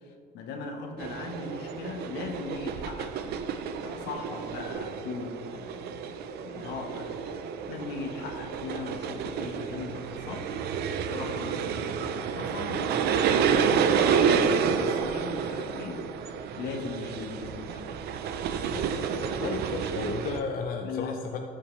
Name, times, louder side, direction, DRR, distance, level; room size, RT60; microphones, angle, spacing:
voice 1, 0.0-3.4 3.8-6.2 6.4-7.1 7.7-10.5 11.1-16.0 16.6-17.9 19.4-19.6 20.8-21.2, left 4 dB, 85° left, 3 dB, 1.2 m, -39 dB
sound 1, 1.0-20.4, right 6 dB, 70° right, 0.6 m, -30 dB
voice 2, 18.7-21.4, left 5 dB, 60° left, 4 dB, 0.6 m, -34 dB
13.5 x 5.8 x 3.2 m, 2.5 s
cardioid pair, 110°, 17 cm